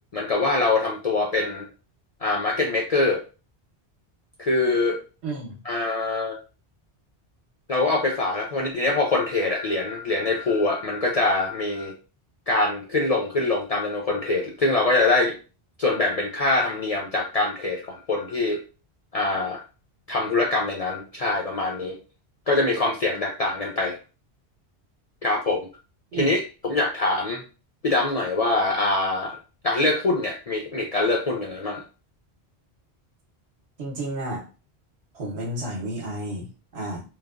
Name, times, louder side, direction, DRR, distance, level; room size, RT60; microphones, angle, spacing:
voice 1, 0.1-1.7 2.2-3.2 4.4-5.0 5.6-6.4 7.7-11.9 12.5-15.3 15.8-18.6 19.1-19.6 20.1-22.0 22.5-24.0 25.2-25.7 26.1-27.4 27.8-29.4 29.6-31.8, left 2 dB, 60° left, -1 dB, 0.4 m, -24 dB
voice 2, 5.2-5.6 26.1-26.3 33.8-34.5 35.1-37.0, right 1 dB, 75° right, -1 dB, 1.2 m, -31 dB
3.1 x 2.2 x 2.4 m, 0.34 s
omnidirectional pair, 1.1 m